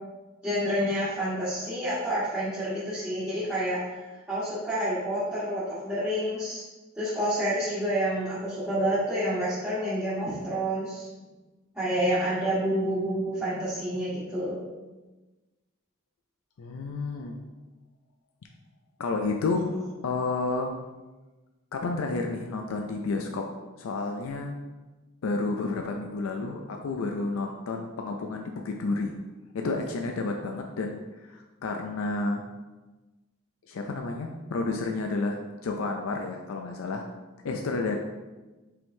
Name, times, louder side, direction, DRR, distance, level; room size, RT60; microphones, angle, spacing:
voice 1, 0.4-4.0 4.3-6.6 6.9-11.1 11.7-14.6, equal, 10° right, -14 dB, 1.3 m, -28 dB
voice 2, 16.6-17.4 19.0-19.7 20.0-20.7 21.7-23.5 23.8-24.5 25.2-29.2 29.5-32.4 33.7-37.0 37.4-38.0, left 3 dB, 90° left, 3 dB, 0.4 m, -30 dB
5.5 x 3.6 x 2.7 m, 1.2 s
head